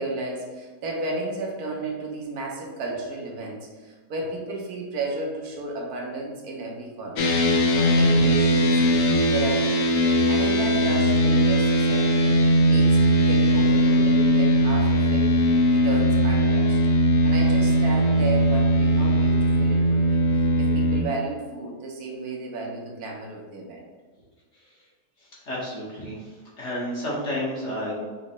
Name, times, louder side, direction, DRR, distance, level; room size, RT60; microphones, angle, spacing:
voice 1, 0.0-10.0 10.3-12.3 12.7-15.3 15.7-16.8 17.2-23.8, right 2 dB, 75° right, -1 dB, 1.3 m, -33 dB
sound 1, 7.2-21.0, equal, 70° left, 1.0 m, -20 dB
voice 2, 25.2-27.9, equal, 50° left, -6 dB, 1.7 m, -32 dB
5.5 x 3.0 x 3.0 m, 1.4 s
omnidirectional pair, 1.6 m